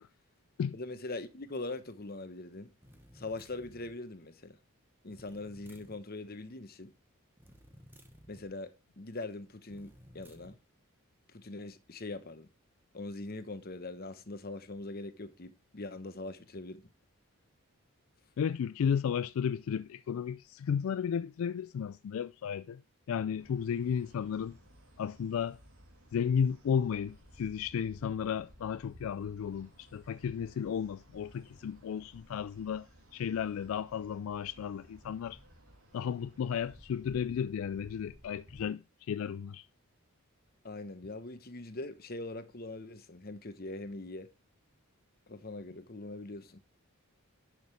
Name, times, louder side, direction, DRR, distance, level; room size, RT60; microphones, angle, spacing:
voice 1, 0.7-2.7 3.1-4.6 5.0-6.9 8.3-10.6 11.3-12.5 12.9-16.9 40.6-44.3 45.3-46.6, left 2 dB, 45° left, 1.0 m, -42 dB
sound 1, 2.8-4.0 5.1-6.0 7.4-8.5 9.7-10.6, equal, 10° right, 1.3 m, -56 dB
voice 2, 18.4-22.8 23.1-24.6 25.0-25.6 26.1-32.9 33.1-35.4 35.9-38.8 39.1-39.7, left 7 dB, 70° left, 0.3 m, -33 dB
sound 2, 23.4-38.6, equal, 80° right, 2.6 m, -57 dB
10.5 x 6.3 x 3.3 m
head